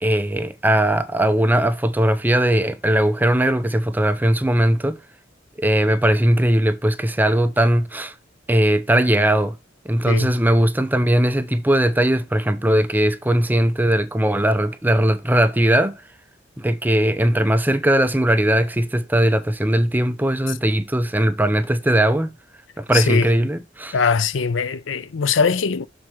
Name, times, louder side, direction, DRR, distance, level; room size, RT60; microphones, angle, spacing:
voice 1, 0.0-5.0 5.6-8.1 8.5-9.6 9.8-16.0 16.6-22.3 22.8-24.0, right 1 dB, 10° right, 0.5 m, -19 dB
voice 2, 22.9-23.3 23.9-25.9, left 5 dB, 75° left, 0.5 m, -21 dB
6.6 x 4.2 x 5.9 m
head